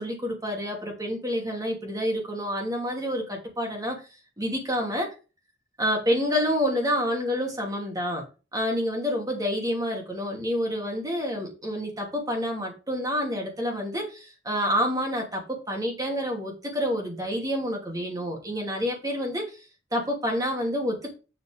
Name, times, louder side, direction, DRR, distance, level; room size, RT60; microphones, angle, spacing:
voice 1, 0.0-4.0 4.4-5.1 5.8-8.2 8.5-19.5 19.9-21.1, equal, 20° right, 1 dB, 2.8 m, -28 dB
7.6 x 6.4 x 3.7 m, 0.31 s
head